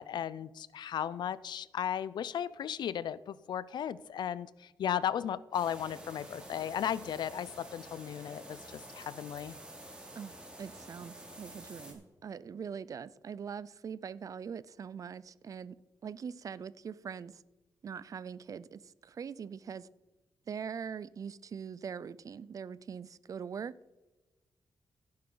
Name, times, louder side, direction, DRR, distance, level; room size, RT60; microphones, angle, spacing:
voice 1, 0.0-9.5, left 9 dB, 75° left, 0.5 m, -35 dB
sound 1, 5.5-11.9, right 1 dB, 15° right, 3.1 m, -49 dB
voice 2, 10.6-15.8 16.0-17.4 17.8-19.9 20.5-23.9, right 7 dB, 50° right, 0.5 m, -42 dB
15.5 x 8.6 x 3.9 m
wide cardioid pair, 120°, 8 cm